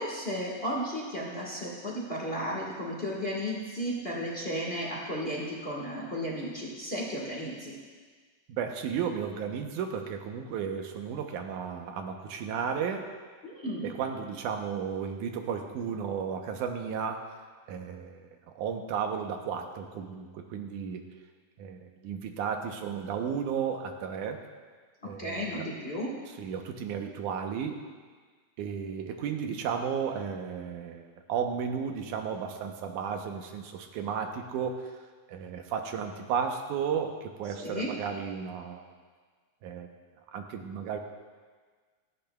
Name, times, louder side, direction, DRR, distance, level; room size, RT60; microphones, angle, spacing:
voice 1, 0.0-7.8 13.4-13.9 25.2-26.1 37.6-37.9, equal, 30° left, -4 dB, 1.2 m, -34 dB
voice 2, 8.5-13.1 13.8-17.2 17.7-18.3 18.6-21.0 21.6-24.4 25.0-25.7 26.3-27.8 28.6-34.9 35.3-38.9 39.6-39.9 40.3-41.0, right 7 dB, 90° right, 4 dB, 2.4 m, -34 dB
17.0 x 14.0 x 2.3 m, 1.5 s
omnidirectional pair, 3.5 m